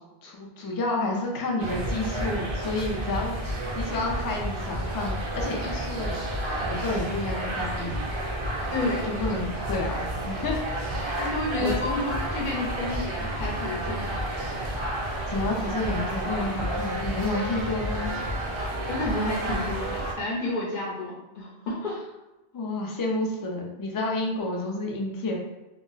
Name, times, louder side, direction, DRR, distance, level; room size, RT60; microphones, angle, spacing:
voice 1, 0.2-6.2 6.6-8.0 9.0-10.6 11.0-11.7 15.3-18.1 20.5-20.6 22.5-25.4, left 2 dB, 40° left, -1 dB, 0.3 m, -30 dB
sound 1, 1.6-20.1, right 1 dB, 50° right, 0.3 m, -31 dB
voice 2, 8.7-9.1 11.2-14.5 18.1-18.2 18.8-22.0, left 2 dB, 55° left, -4 dB, 0.8 m, -30 dB
2.3 x 2.0 x 3.8 m, 1.0 s
omnidirectional pair, 1.0 m